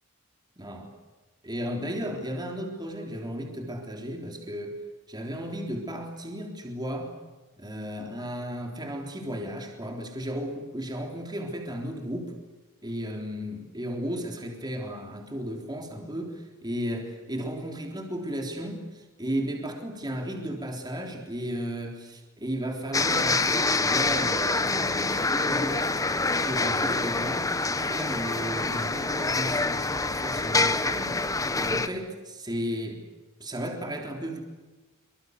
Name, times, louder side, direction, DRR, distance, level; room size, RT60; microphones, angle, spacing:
voice 1, 0.6-0.9 1.4-4.8 5.1-7.1 7.6-12.3 12.8-27.5 27.9-31.2 31.6-33.0 33.4-34.4, equal, 20° right, 2 dB, 3.7 m, -34 dB
sound 1, 22.9-31.9, left 3 dB, 15° left, 1.2 m, -26 dB
26.5 x 24.5 x 8.2 m, 1.2 s
head